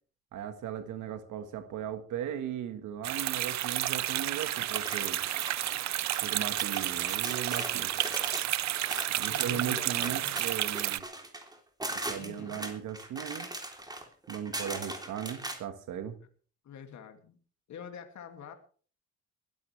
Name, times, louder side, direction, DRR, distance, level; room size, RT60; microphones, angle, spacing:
voice 1, 0.3-5.2 6.2-7.9 9.1-11.0 12.1-13.5 14.3-16.2, right 9 dB, 80° right, 9 dB, 1.6 m, -37 dB
sound 1, 3.0-11.0, right 13 dB, 65° right, 0.6 m, -31 dB
sound 2, 4.7-6.2 6.6-15.6, right 1 dB, 15° right, 3.5 m, -40 dB
voice 2, 9.1-10.4 12.2-12.6 16.6-17.4 17.7-18.5, left 8 dB, 70° left, 5 dB, 2.5 m, -46 dB
21.5 x 13.5 x 3.4 m, 0.42 s
cardioid pair, 90°, 30 cm